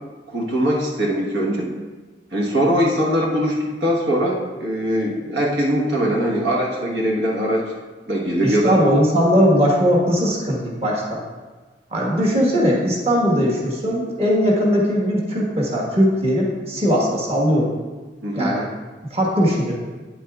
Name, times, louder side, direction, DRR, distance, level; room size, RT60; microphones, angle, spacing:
voice 1, 0.3-1.7 2.3-7.6 8.1-8.8 18.2-18.5, equal, 80° right, -3 dB, 1.2 m, -21 dB
voice 2, 8.4-11.2 11.9-17.7 18.3-18.6 19.1-19.7, equal, 35° right, -3 dB, 1.4 m, -19 dB
8.7 x 8.2 x 2.4 m, 1.3 s
head